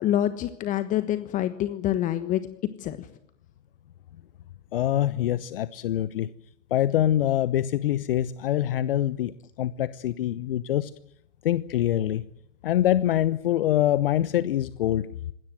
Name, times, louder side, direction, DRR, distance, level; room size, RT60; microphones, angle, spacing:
voice 1, 0.0-2.5 2.8-3.1, left 12 dB, 20° left, 12 dB, 1.4 m, -26 dB
voice 2, 4.7-6.3 6.7-10.9 11.4-12.2 12.6-15.1, left 12 dB, 45° left, 16 dB, 1.0 m, -24 dB
26.5 x 20.0 x 7.9 m, 0.75 s
hypercardioid pair, 125°, 38 cm